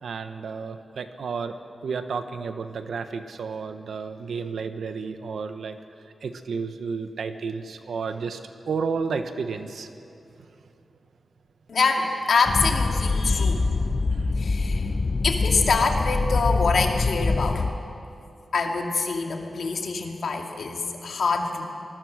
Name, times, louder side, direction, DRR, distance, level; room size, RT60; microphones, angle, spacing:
voice 1, 0.0-1.6 1.8-5.8 6.2-8.4 8.6-9.9 14.2-14.3, right 5 dB, 85° right, 8 dB, 1.3 m, -31 dB
voice 2, 11.7-13.7 14.4-14.9 15.2-17.7 18.5-21.7, left 4 dB, 75° left, 2 dB, 2.5 m, -25 dB
sound 1, 12.5-17.7, left 3 dB, 40° left, 0.9 m, -24 dB
26.5 x 20.5 x 6.6 m, 2.7 s
wide cardioid pair, 125°, 0 cm